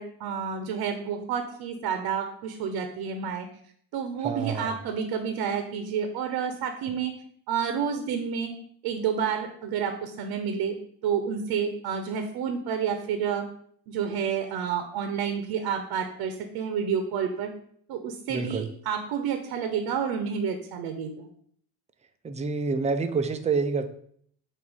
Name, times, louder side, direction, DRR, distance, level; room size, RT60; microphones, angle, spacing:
voice 1, 0.0-3.5 3.9-7.1 7.5-8.5 8.8-10.8 11.0-13.4 13.9-17.5 17.9-21.3, right 7 dB, 65° right, 6 dB, 1.0 m, -29 dB
voice 2, 4.2-4.8 18.3-18.7 22.2-23.9, right 4 dB, 15° right, 8 dB, 0.6 m, -27 dB
8.1 x 2.8 x 5.5 m, 0.63 s
cardioid pair, 130°, 41 cm